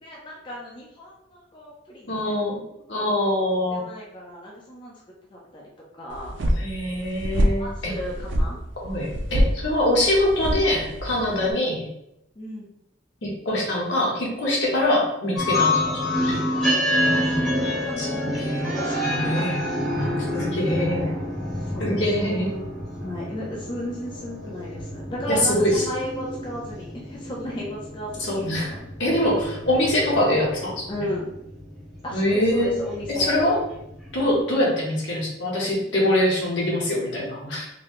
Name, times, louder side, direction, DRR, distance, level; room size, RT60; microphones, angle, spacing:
voice 1, 0.0-2.3 3.7-4.9 5.3-5.6 5.9-6.3 7.6-8.6 12.4-12.7 16.2-17.5 17.8-19.5 20.0-20.3 21.5-22.8 23.0-28.8 30.9-31.3 32.0-33.4, equal, 25° left, -4 dB, 0.6 m, -35 dB
voice 2, 2.1-2.6 2.9-3.8 6.6-7.9 8.8-11.9 13.2-16.5 18.0-19.6 20.3-21.1 21.8-22.5 25.3-25.8 28.3-28.7 29.0-30.9 32.1-32.8 33.1-33.6 34.1-37.7, left 1 dB, 70° left, -3 dB, 1.3 m, -24 dB
sound 1, 6.1-11.5, equal, 75° right, 0.5 m, -26 dB
sound 2, 15.3-34.4, left 1 dB, ahead, 1.2 m, -28 dB
4.0 x 2.8 x 3.2 m, 0.81 s
head